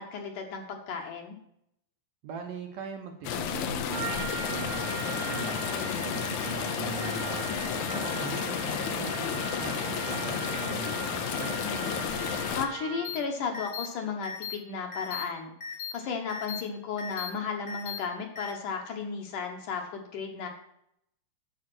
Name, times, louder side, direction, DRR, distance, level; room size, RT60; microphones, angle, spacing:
voice 1, 0.0-1.4 5.7-6.1 11.6-15.5 15.9-20.5, left 5 dB, 65° left, 3 dB, 2.3 m, -35 dB
voice 2, 2.2-11.6, right 5 dB, 70° right, 4 dB, 2.2 m, -41 dB
sound 1, 3.2-12.7, left 8 dB, 80° left, 1.7 m, -32 dB
Trumpet, 3.9-13.3, right 9 dB, 85° right, 3.3 m, -39 dB
sound 2, 13.0-13.2 13.5-13.9 14.2-14.6 14.9-15.2 15.6-15.9 16.3-16.6 17.0-17.3 17.7-18.0 18.4-18.5, left 6 dB, 30° left, 1.0 m, -37 dB
10.0 x 7.0 x 6.1 m, 0.76 s
omnidirectional pair, 4.5 m